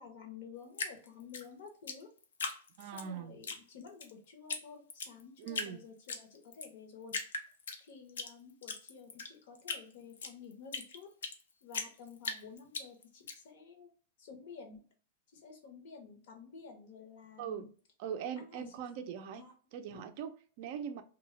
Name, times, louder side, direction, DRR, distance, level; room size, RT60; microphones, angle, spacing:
voice 1, 0.0-2.1 2.8-7.1 7.8-11.1 11.6-13.9 14.2-14.8 15.3-17.7 18.4-19.1 19.4-19.5 19.9-20.0, left 6 dB, 65° left, 0.8 m, -52 dB
Drip, 0.7-3.1 3.4-4.1 4.5-4.6 4.9-5.7 6.1-6.7 7.1-8.3 8.6-11.4 11.7-13.3, left 5 dB, 85° left, 0.4 m, -39 dB
voice 2, 2.8-3.4 5.4-5.8 17.4-17.7 18.0-19.5 19.7-21.0, right 8 dB, 55° right, 0.3 m, -41 dB
2.2 x 2.0 x 3.0 m
hypercardioid pair, 130°, 0 cm